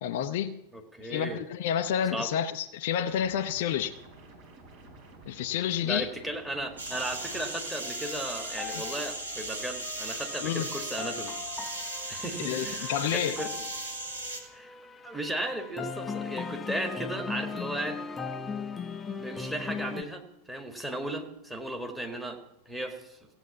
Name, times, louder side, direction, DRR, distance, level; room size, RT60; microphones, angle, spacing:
voice 1, 0.0-0.6 1.0-3.9 5.3-6.1 8.7-8.8 10.4-10.7 12.4-13.4, left 9 dB, 50° left, 0.6 m, -29 dB
voice 2, 0.7-1.4 2.1-2.3 5.8-11.3 12.1-13.5 14.5-14.7 15.0-18.0 19.2-23.2, right 1 dB, 5° right, 1.9 m, -35 dB
sound 1, 3.1-7.5, right 2 dB, 45° right, 3.8 m, -51 dB
sound 2, 6.8-14.4, right 2 dB, 75° right, 2.3 m, -37 dB
sound 3, 6.9-20.0, left 5 dB, 15° left, 0.7 m, -39 dB
16.0 x 8.1 x 7.0 m
figure-of-eight pair, 90°, 0 cm